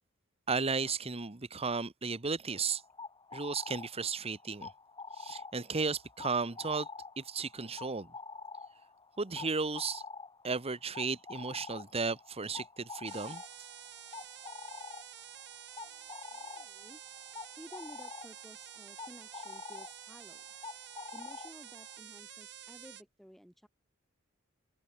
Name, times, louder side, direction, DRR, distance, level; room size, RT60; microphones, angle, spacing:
voice 1, 0.5-2.8 3.3-4.7 5.2-6.9 7.2-8.1 9.2-10.0 10.4-13.4, right 4 dB, 30° right, 1.1 m, -34 dB
sound 1, 2.5-22.0, left 4 dB, 25° left, 4.8 m, -47 dB
sound 2, 13.1-23.0, right 11 dB, 60° right, 4.1 m, -50 dB
voice 2, 15.8-17.0 17.6-20.5 21.1-23.7, equal, ahead, 3.3 m, -54 dB
head